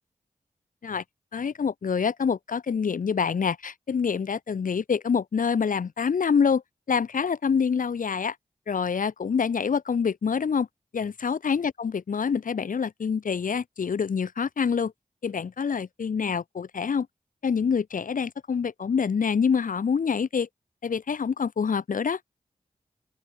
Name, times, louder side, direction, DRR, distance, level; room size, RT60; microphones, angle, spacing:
voice 1, 1.3-6.6 6.9-8.3 8.7-10.7 10.9-14.9 15.2-17.1 17.4-20.5 20.8-22.2, left 6 dB, 70° left, 1.0 m, -26 dB
open air
cardioid pair, 50°, 14 cm